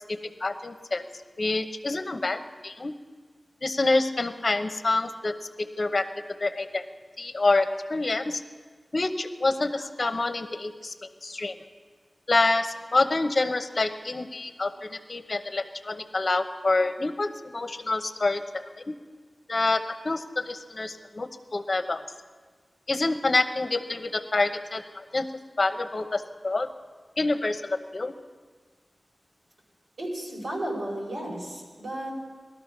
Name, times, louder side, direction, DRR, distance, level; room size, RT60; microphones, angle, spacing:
voice 1, 0.1-1.0 1.4-2.9 3.6-6.1 6.4-6.8 7.2-8.4 8.9-10.9 11.2-11.5 12.3-18.4 19.5-22.0 22.9-25.3 25.6-26.7 27.2-28.1, left 2 dB, 50° left, 9 dB, 0.9 m, -27 dB
voice 2, 30.0-32.1, right 1 dB, 75° right, -3 dB, 4.8 m, -33 dB
18.5 x 13.0 x 6.0 m, 1.5 s
wide cardioid pair, 90°, 0 cm